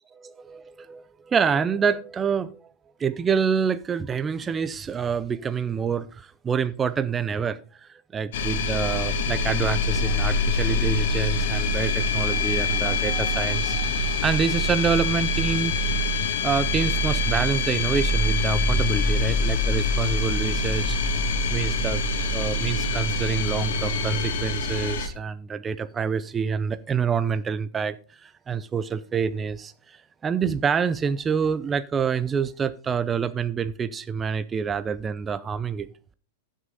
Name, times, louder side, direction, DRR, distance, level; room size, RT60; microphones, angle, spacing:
voice 1, 0.1-2.7 3.0-15.7 16.4-22.0 22.3-28.0 28.2-30.0 30.2-35.9, right 6 dB, 15° right, 0.5 m, -27 dB
sound 1, 8.3-25.1, left 2 dB, 65° left, 2.2 m, -24 dB
14.5 x 6.3 x 3.9 m
supercardioid pair, 150°, 0 cm